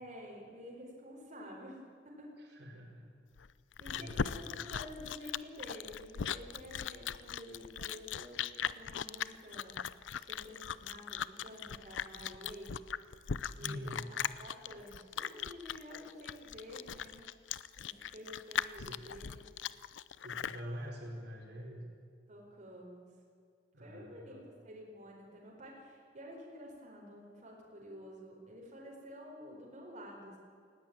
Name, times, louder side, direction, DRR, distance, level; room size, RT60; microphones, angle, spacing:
voice 1, 0.0-2.3 3.8-9.8 10.1-12.7 13.5-17.3 17.8-19.4 22.3-23.1 23.8-30.4, equal, 40° right, -2 dB, 4.5 m, -50 dB
voice 2, 2.4-3.1 3.9-4.6 13.6-14.1 18.8-19.0 20.2-21.9 23.7-24.5, equal, 60° right, -1 dB, 4.7 m, -45 dB
Chewing mastication, 3.4-20.6, left 8 dB, 85° left, 0.5 m, -39 dB
19.0 x 16.5 x 8.9 m, 2.3 s
head